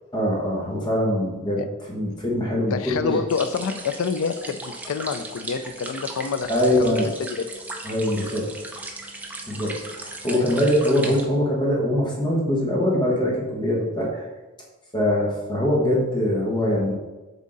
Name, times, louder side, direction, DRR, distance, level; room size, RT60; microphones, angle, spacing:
voice 1, 0.1-3.2 6.5-7.1 7.8-8.5 9.5-14.2 14.9-16.9, left 1 dB, 20° left, -3 dB, 1.1 m, -23 dB
voice 2, 2.6-6.5 6.8-7.3 10.3-10.5, left 5 dB, 65° left, 10 dB, 0.3 m, -28 dB
sound 1, 3.3-11.3, right 2 dB, 5° right, 0.5 m, -37 dB
7.4 x 3.7 x 3.9 m, 1.2 s
head